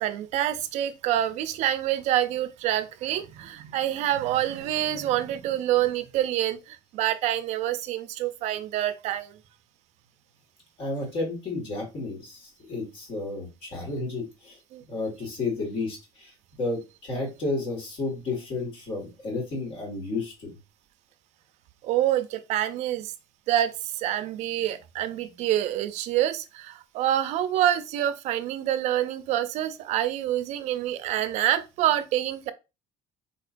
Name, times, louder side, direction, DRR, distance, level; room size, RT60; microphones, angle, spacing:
voice 1, 0.0-9.3 14.7-14.8 21.8-23.1 23.5-32.5, right 12 dB, 60° right, 0.5 m, -27 dB
voice 2, 10.8-14.6 14.9-16.3 16.6-20.5, left 3 dB, 45° left, 1.7 m, -32 dB
4.2 x 2.9 x 2.5 m
cardioid pair, 155°, 13 cm